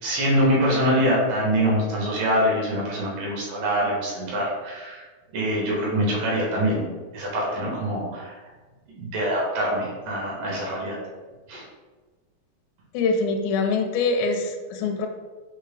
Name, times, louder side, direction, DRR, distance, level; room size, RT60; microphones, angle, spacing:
voice 1, 0.0-5.0 5.3-6.8 7.1-8.3 9.0-11.0 11.5-11.6, equal, 70° right, -4 dB, 2.4 m, -24 dB
voice 2, 12.9-15.1, left 4 dB, 85° left, 4 dB, 2.3 m, -24 dB
6.3 x 2.1 x 3.2 m, 1.3 s
omnidirectional pair, 4.1 m